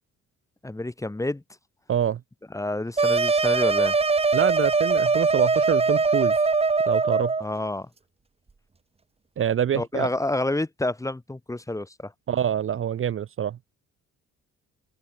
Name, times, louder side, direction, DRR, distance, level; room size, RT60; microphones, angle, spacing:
voice 1, 0.6-1.4 2.5-4.0 7.4-7.9 9.7-12.1, left 2 dB, 10° left, 1.3 m, -29 dB
voice 2, 1.9-2.2 4.3-6.4 6.9-7.3 9.4-10.1 12.3-13.6, right 9 dB, 45° right, 0.7 m, -25 dB
sound 1, 3.0-7.4, right 4 dB, 20° right, 1.1 m, -21 dB
cardioid pair, 90°, 30 cm